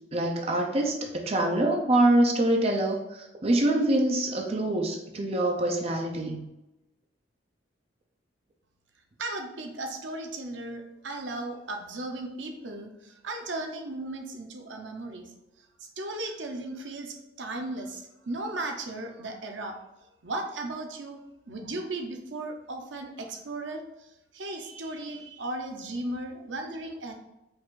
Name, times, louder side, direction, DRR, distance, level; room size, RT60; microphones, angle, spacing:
voice 1, 0.1-6.5, right 1 dB, 35° right, 1 dB, 0.5 m, -25 dB
voice 2, 9.2-15.3 15.8-19.8 20.2-21.2 21.5-27.1, right 2 dB, 75° right, 3 dB, 0.7 m, -36 dB
5.2 x 2.5 x 3.7 m, 0.94 s
head